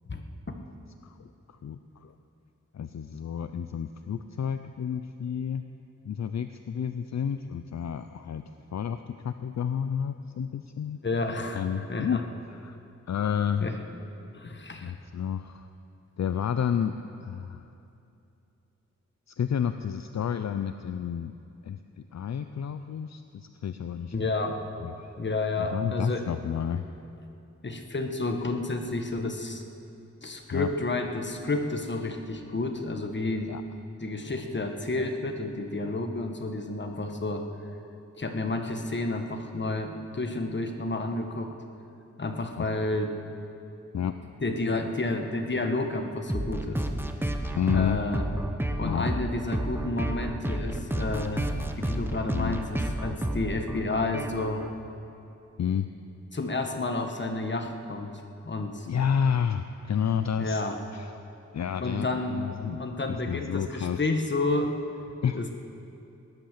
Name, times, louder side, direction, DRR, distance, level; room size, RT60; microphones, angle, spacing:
voice 1, 0.1-0.6 11.0-12.2 13.6-13.8 14.3-14.9 24.1-24.6 25.2-26.3 27.6-29.6 30.2-33.5 34.0-37.4 38.2-41.5 42.2-43.2 44.4-46.9 47.7-48.3 48.8-51.5 51.8-54.6 56.3-58.9 60.4-60.8 61.8-62.4 62.7-64.7 65.3-65.5, left 2 dB, 40° left, 4 dB, 1.3 m, -30 dB
voice 2, 1.0-2.1 2.7-5.6 6.0-8.4 8.7-11.0 11.5-12.2 12.5-12.8 13.1-13.7 14.8-15.7 16.2-17.0 17.2-17.6 19.3-21.3 21.6-24.2 24.8-25.1 25.6-26.9 30.5-30.7 33.5-33.6 42.6-42.7 43.9-44.3 47.5-48.0 48.8-49.1 52.3-52.6 55.6-55.9 58.9-60.6 60.9-61.1 61.5-62.8 63.1-64.0 65.2-65.4, left 8 dB, 65° left, 9 dB, 0.5 m, -30 dB
sound 1, 46.3-54.7, right 1 dB, 5° right, 0.9 m, -31 dB
18.5 x 10.5 x 6.7 m, 2.7 s
wide cardioid pair, 115°, 29 cm